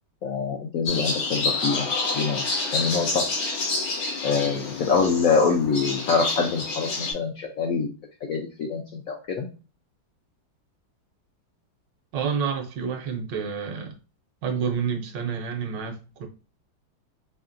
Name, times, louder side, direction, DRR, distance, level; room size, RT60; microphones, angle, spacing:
voice 1, 0.2-1.9 2.1-2.4 2.7-3.2 4.2-7.9 8.2-9.5, left 5 dB, 70° left, 0.8 m, -25 dB
sound 1, 0.9-7.1, left 3 dB, 90° left, 1.7 m, -28 dB
voice 2, 12.1-13.9 14.4-16.3, right 6 dB, 75° right, 1.3 m, -29 dB
4.9 x 2.7 x 2.5 m
omnidirectional pair, 2.1 m